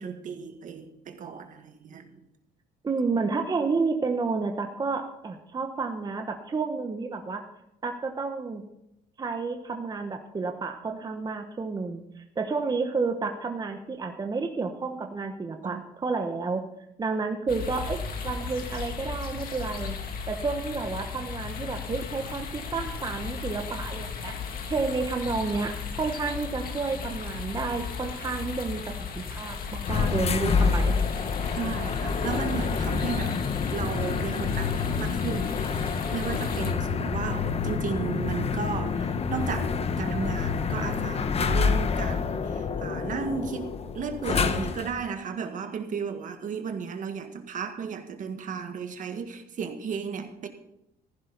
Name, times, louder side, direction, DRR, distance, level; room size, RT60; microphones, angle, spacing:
voice 1, 0.0-2.2 15.6-15.8 31.5-35.5 36.1-50.5, right 6 dB, 50° right, 6 dB, 1.6 m, -34 dB
voice 2, 2.8-7.4 7.8-8.6 9.2-16.6 17.0-20.0 20.3-24.3 24.7-28.8 29.1-30.9, right 4 dB, 25° right, 4 dB, 1.1 m, -30 dB
sound 1, 17.5-36.7, left 6 dB, 60° left, 2.2 m, -36 dB
sound 2, 29.8-45.0, left 5 dB, 35° left, 0.9 m, -28 dB
14.5 x 11.0 x 4.0 m, 0.82 s
cardioid pair, 110°, 17 cm